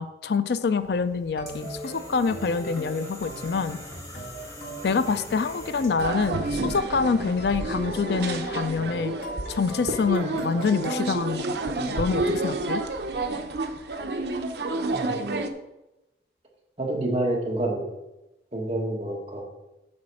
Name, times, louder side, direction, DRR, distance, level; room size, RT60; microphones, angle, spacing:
voice 1, 0.0-3.8 4.8-9.1 9.5-12.8, left 5 dB, 70° left, 13 dB, 0.4 m, -26 dB
sound 1, 0.8-6.2, left 1 dB, 20° left, 2.0 m, -44 dB
sound 2, 1.3-11.1, right 1 dB, 55° left, 2.0 m, -39 dB
sound 3, 6.0-15.5, right 2 dB, 75° right, 0.7 m, -30 dB
voice 2, 16.8-17.9 18.5-19.4, right 1 dB, 35° right, -1 dB, 1.7 m, -28 dB
8.7 x 4.3 x 6.2 m, 0.97 s
head